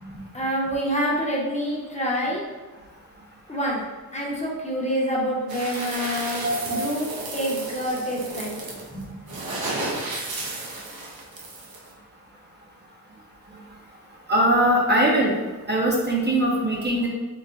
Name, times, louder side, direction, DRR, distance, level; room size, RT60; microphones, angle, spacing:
voice 1, 0.0-2.4 3.5-3.8 4.1-8.5 8.9-9.4, equal, 20° left, -4 dB, 0.7 m, -27 dB
sound 1, 5.5-11.9, right 2 dB, 75° right, 0.7 m, -33 dB
voice 2, 14.3-15.3 15.7-17.1, right 1 dB, 30° right, -3 dB, 0.6 m, -21 dB
3.9 x 2.1 x 2.4 m, 1.3 s
cardioid pair, 65°, 36 cm